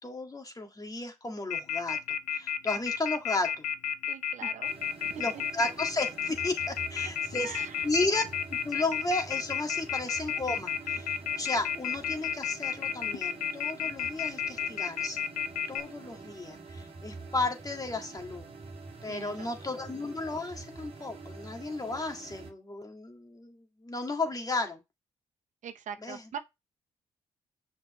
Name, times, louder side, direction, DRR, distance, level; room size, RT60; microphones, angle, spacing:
voice 1, 0.0-3.7 5.2-7.6 7.8-8.2 8.5-15.2 15.7-18.5 19.0-24.8 26.0-26.2, left 2 dB, 25° left, 1.8 m, -34 dB
Telephone, 1.5-15.8, left 8 dB, 70° left, 0.6 m, -31 dB
voice 2, 4.1-4.7 5.0-5.4 7.4-7.9 19.1-19.8 25.6-26.4, right 8 dB, 65° right, 0.7 m, -42 dB
sound 1, 4.6-22.5, right 3 dB, 45° right, 1.8 m, -47 dB
6.0 x 5.9 x 3.1 m
supercardioid pair, 50°, 14 cm